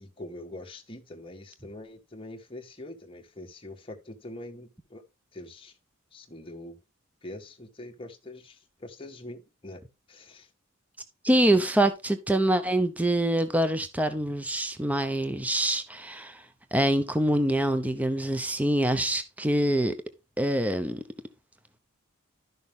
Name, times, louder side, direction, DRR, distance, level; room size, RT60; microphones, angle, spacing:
voice 1, 0.0-5.0 5.3-5.7 6.1-6.8 7.2-9.8 10.1-10.5, left 1 dB, 25° left, 1.6 m, -43 dB
voice 2, 11.2-16.4 16.7-19.9 20.4-21.0, right 1 dB, 5° right, 0.7 m, -25 dB
12.0 x 6.3 x 3.6 m
head